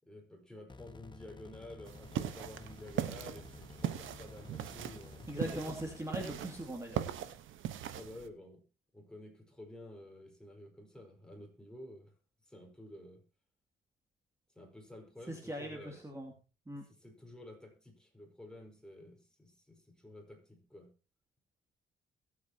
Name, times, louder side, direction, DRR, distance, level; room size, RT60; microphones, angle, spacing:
voice 1, 0.0-5.8 7.9-8.6 8.9-12.1 12.5-13.2 14.5-16.0 16.9-20.9, left 1 dB, 5° left, 4.7 m, -51 dB
sound 1, 0.7-6.0, left 4 dB, 25° left, 1.2 m, -53 dB
sound 2, 1.9-8.3, right 11 dB, 80° right, 1.2 m, -40 dB
voice 2, 5.3-7.0 15.3-16.3 16.7-16.8, equal, 15° right, 2.6 m, -40 dB
21.5 x 8.4 x 2.9 m
cardioid pair, 90°, 20 cm